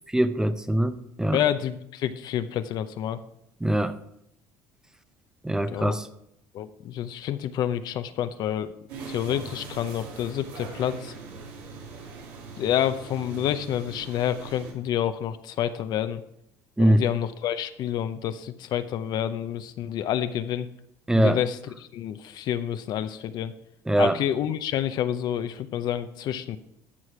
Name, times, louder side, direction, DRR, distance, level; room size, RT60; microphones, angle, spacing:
voice 1, 0.1-1.4 3.6-4.0 5.4-6.1 16.8-17.0 21.1-21.4 23.9-24.2, right 1 dB, 10° right, 11 dB, 0.6 m, -22 dB
voice 2, 1.3-3.2 5.7-6.0 6.5-8.7 9.1-11.1 12.6-16.2 16.8-20.7 21.1-23.5 24.0-26.6, left 10 dB, 60° left, 11 dB, 0.7 m, -28 dB
sound 1, 8.9-14.7, right 4 dB, 85° right, 2.5 m, -41 dB
12.5 x 4.9 x 6.0 m, 0.77 s
supercardioid pair, 90°, 8 cm